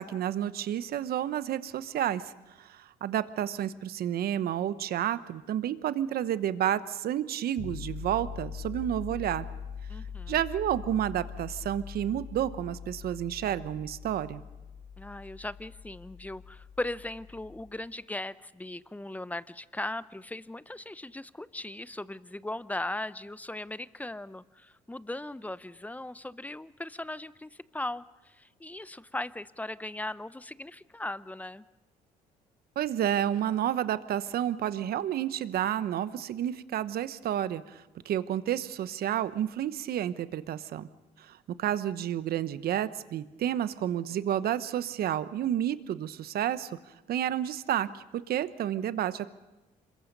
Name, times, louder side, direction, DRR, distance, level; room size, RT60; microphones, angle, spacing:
voice 1, 0.0-2.3 2.6-9.5 10.3-14.4 32.8-40.9 41.2-46.8 47.1-49.3, right 11 dB, 65° right, 14 dB, 1.0 m, -30 dB
sound 1, 7.6-17.7, left 6 dB, 60° left, 4.9 m, -42 dB
voice 2, 9.9-10.4 15.0-31.6, left 1 dB, 10° left, 16 dB, 0.7 m, -38 dB
26.0 x 22.0 x 5.4 m, 1.0 s
supercardioid pair, 75°, 17 cm